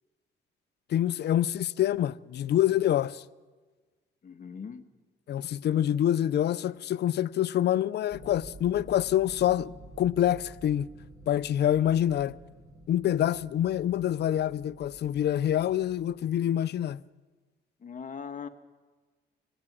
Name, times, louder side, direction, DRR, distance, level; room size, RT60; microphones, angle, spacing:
voice 1, 0.9-3.2 5.3-10.9 11.3-12.3 12.9-17.0, left 11 dB, 55° left, 0.5 m, -26 dB
voice 2, 4.2-4.9 17.8-18.5, left 6 dB, 40° left, 1.5 m, -40 dB
sound 1, 8.1-16.2, right 1 dB, 20° right, 8.0 m, -50 dB
25.5 x 17.5 x 6.2 m
cardioid pair, 90°, 20 cm